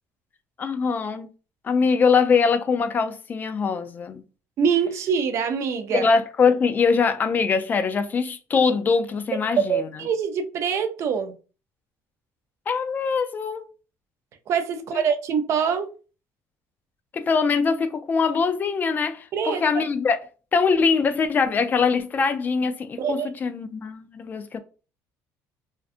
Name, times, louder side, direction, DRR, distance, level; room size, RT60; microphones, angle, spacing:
voice 1, 0.6-1.3 1.6-4.2 5.9-9.9 12.7-13.7 14.7-15.0 17.1-20.2 20.5-24.6, left 5 dB, 30° left, 0.3 m, -22 dB
voice 2, 4.6-6.1 9.7-11.3 14.5-15.9 19.3-19.6 23.0-23.3, right 6 dB, 50° right, 0.4 m, -24 dB
2.5 x 2.2 x 2.4 m
cardioid pair, 125°, 6 cm